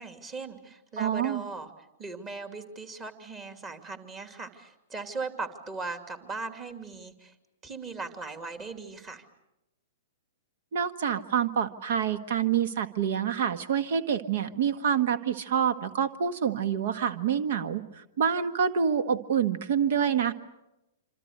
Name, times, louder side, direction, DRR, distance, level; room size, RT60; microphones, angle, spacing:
voice 1, 0.0-1.7 2.0-7.3 7.6-9.2, right 3 dB, 25° right, 7 dB, 2.7 m, -38 dB
voice 2, 1.0-1.4 10.7-20.3, right 8 dB, 55° right, 12 dB, 1.5 m, -27 dB
26.5 x 26.5 x 6.6 m, 0.94 s
figure-of-eight pair, 110°, 0 cm